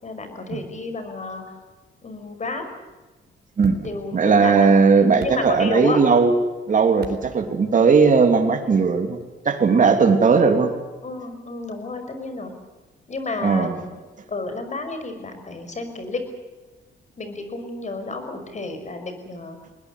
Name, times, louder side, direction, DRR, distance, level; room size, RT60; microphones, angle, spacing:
voice 1, 0.0-1.4 2.0-2.7 3.8-4.7 5.2-6.0 11.0-12.5 13.1-13.9 14.3-16.2 17.2-19.6, left 3 dB, 35° left, 7 dB, 5.8 m, -31 dB
sound 1, 3.6-4.5 5.0-6.2 7.0-7.7 9.2-9.3, right 6 dB, 55° right, 4.0 m, -40 dB
voice 2, 4.1-6.3 6.7-9.2 9.4-10.7 13.4-13.8, right 5 dB, 40° right, 5 dB, 3.1 m, -17 dB
21.5 x 20.5 x 8.3 m, 1.2 s
cardioid pair, 90°, 20 cm